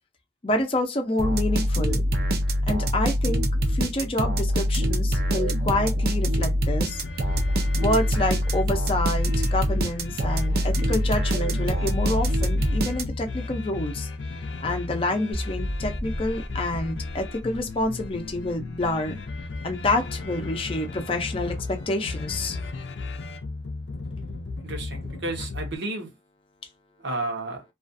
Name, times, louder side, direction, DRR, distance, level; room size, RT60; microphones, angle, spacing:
voice 1, 0.4-2.0 2.7-3.4 3.7-7.0 7.8-14.1 14.6-19.2 19.6-22.7, left 2 dB, 30° left, 0.5 m, -28 dB
sound 1, 1.2-13.4, equal, 55° right, 0.5 m, -24 dB
sound 2, 6.9-25.8, left 3 dB, 80° left, 0.5 m, -36 dB
sound 3, 15.3-22.5, equal, 20° right, 0.7 m, -38 dB
voice 2, 24.6-26.1 27.0-27.6, right 2 dB, 75° right, 0.8 m, -32 dB
2.4 x 2.3 x 2.5 m
head